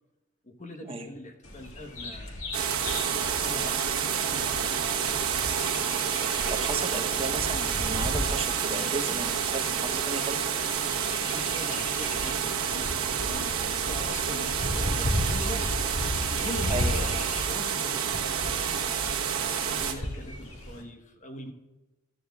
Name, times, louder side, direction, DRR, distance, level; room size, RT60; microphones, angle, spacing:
voice 1, 0.4-3.9 4.2-5.2 11.3-15.8 16.1-18.8 19.4-21.5, left 1 dB, 35° left, 5 dB, 1.1 m, -42 dB
Bird vocalization bird call bird song, 1.4-20.8, left 1 dB, 70° left, 1.8 m, -36 dB
sound 1, 2.5-19.9, right 7 dB, 80° right, 1.1 m, -29 dB
voice 2, 6.5-10.5 16.7-17.0, right 2 dB, 25° right, 6 dB, 0.8 m, -34 dB
Bird vocalization bird call bird song 2, 6.9-9.2 9.5-19.0, left 3 dB, 50° left, 3.3 m, -54 dB
15.0 x 13.0 x 2.3 m, 1.1 s
head